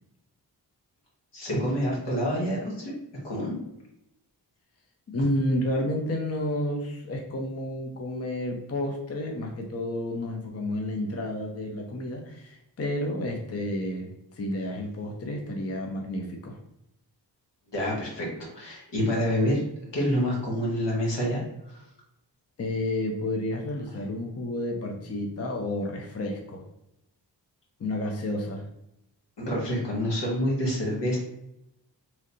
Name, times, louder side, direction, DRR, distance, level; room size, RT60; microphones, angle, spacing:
voice 1, 1.3-2.9 3.2-3.5 17.7-19.6 19.9-21.4 21.6-21.8 29.4-31.2, equal, 80° left, -3 dB, 1.4 m, -27 dB
voice 2, 5.1-16.6 22.6-26.6 27.8-28.7, left 1 dB, 35° left, 1 dB, 0.6 m, -31 dB
3.1 x 2.8 x 2.7 m, 0.83 s
cardioid pair, 70°, 43 cm